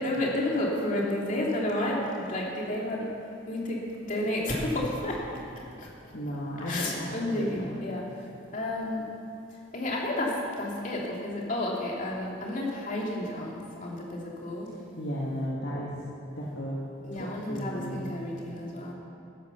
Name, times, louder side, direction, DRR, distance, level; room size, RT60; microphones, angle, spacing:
voice 1, 0.0-3.1 3.5-5.2 5.8-5.9 6.7-8.0 8.5-9.1 9.7-14.7 17.0-18.9, left 1 dB, 40° left, -3 dB, 2.9 m, -31 dB
voice 2, 6.1-7.7 14.7-16.0 16.4-16.8 17.1-18.1, equal, 55° left, -5 dB, 1.9 m, -34 dB
16.0 x 10.5 x 7.0 m, 3.0 s
head